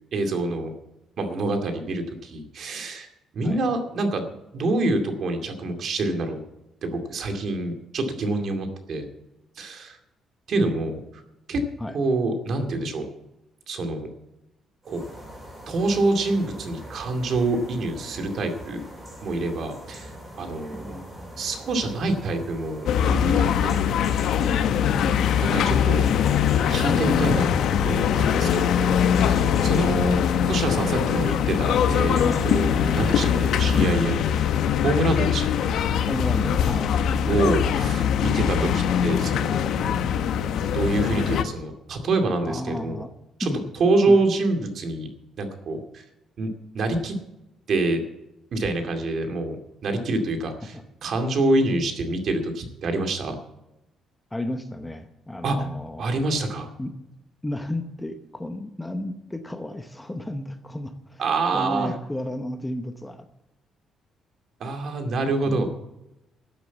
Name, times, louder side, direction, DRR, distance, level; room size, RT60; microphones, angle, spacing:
voice 1, 0.1-0.7 1.2-3.1 3.3-4.3 4.5-6.4 6.8-9.1 9.6-10.0 10.5-11.0 11.5-11.6 11.9-13.0 13.7-14.1 14.8-15.0 15.7-18.8 19.2-20.9 21.4-23.8 25.4-26.0 26.7-27.5 27.8-30.2 30.5-34.6 34.8-35.7 37.3-40.0 40.7-43.0 43.4-45.1 45.4-46.0 46.4-46.5 46.7-47.2 47.7-48.0 48.5-49.6 49.8-53.4 55.4-55.7 56.0-56.7 61.2-61.9 64.6-65.7, right 2 dB, 50° right, 5 dB, 2.3 m, -26 dB
sound 1, 14.8-33.7, equal, 20° right, 4.9 m, -41 dB
voice 2, 20.7-21.4 26.0-26.7 32.2-32.4 36.1-36.9 42.4-43.1 43.4-43.6 44.1-44.2 50.7-50.8 54.3-56.3 56.8-56.9 57.4-61.2 61.5-63.3 65.5-65.7, left 1 dB, 10° left, 8 dB, 0.9 m, -33 dB
sound 2, 22.9-41.4, left 8 dB, 70° left, 0.9 m, -22 dB
13.0 x 8.3 x 8.2 m, 0.91 s
cardioid pair, 150°, 0 cm